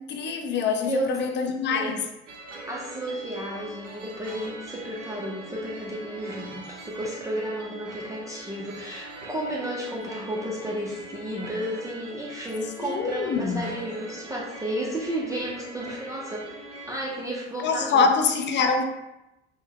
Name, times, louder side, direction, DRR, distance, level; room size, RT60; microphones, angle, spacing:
voice 1, 0.0-2.0 12.8-13.7 17.6-18.8, left 5 dB, 30° left, 0.6 m, -25 dB
voice 2, 0.9-1.9 2.5-16.5 16.9-18.1, right 1 dB, 10° right, 0.7 m, -32 dB
sound 1, 2.3-17.0, right 1 dB, 90° right, 0.5 m, -42 dB
5.4 x 2.2 x 2.9 m
figure-of-eight pair, 60°, 35 cm